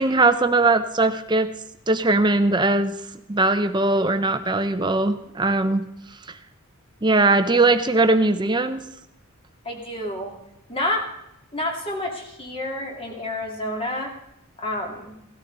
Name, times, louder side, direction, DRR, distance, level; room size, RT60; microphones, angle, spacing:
voice 1, 0.0-1.5 1.9-3.0 3.3-5.9 7.0-8.8, right 2 dB, 20° right, 9 dB, 0.8 m, -20 dB
voice 2, 9.6-10.3 10.7-11.0 11.5-14.1 14.6-15.1, left 1 dB, 25° left, 1 dB, 2.7 m, -29 dB
17.5 x 13.0 x 4.0 m, 0.84 s
head